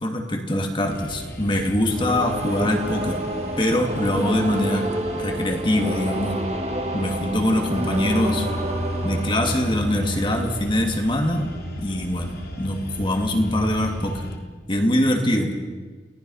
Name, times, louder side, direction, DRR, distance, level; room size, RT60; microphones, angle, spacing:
voice 1, 0.0-3.2 3.6-4.9 5.2-6.4 6.9-8.5 9.0-14.2 14.7-15.5, left 1 dB, 25° left, 3 dB, 2.6 m, -23 dB
sound 1, 0.9-14.4, equal, 55° left, 2.9 m, -34 dB
sound 2, 1.9-10.8, right 1 dB, 35° right, 1.9 m, -30 dB
29.0 x 19.0 x 5.7 m, 1.4 s
head